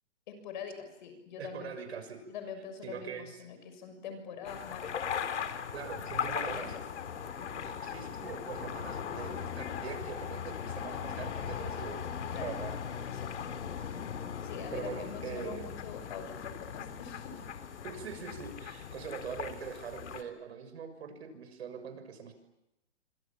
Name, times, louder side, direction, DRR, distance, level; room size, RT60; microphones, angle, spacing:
voice 1, 0.3-1.7 2.3-5.3 6.5-6.7 7.4-7.7 12.3-12.5 13.1-13.6 14.4-17.4, left 6 dB, 40° left, 8 dB, 6.6 m, -44 dB
voice 2, 1.4-2.3 2.8-3.3 5.7-6.7 7.8-12.0 12.4-13.2 14.7-15.7 17.8-22.3, right 6 dB, 60° right, 9 dB, 6.6 m, -42 dB
sound 1, 4.4-20.2, left 7 dB, 70° left, 3.3 m, -39 dB
29.0 x 25.5 x 7.4 m, 0.88 s
hypercardioid pair, 165°, 36 cm